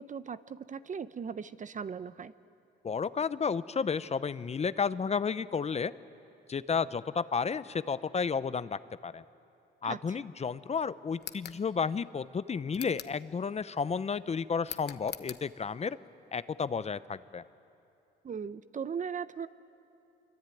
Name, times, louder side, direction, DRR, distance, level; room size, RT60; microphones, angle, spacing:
voice 1, 0.0-2.3 9.8-10.3 18.2-19.5, right 6 dB, 40° right, 14 dB, 0.8 m, -38 dB
voice 2, 2.8-5.9 6.5-9.2 9.8-16.0 16.3-17.4, left 5 dB, 35° left, 15 dB, 0.7 m, -32 dB
sound 1, 11.2-11.6 12.7-13.2 14.6-15.4, left 9 dB, 55° left, 1.2 m, -43 dB
26.0 x 24.0 x 9.2 m, 2.8 s
cardioid pair, 90°, 20 cm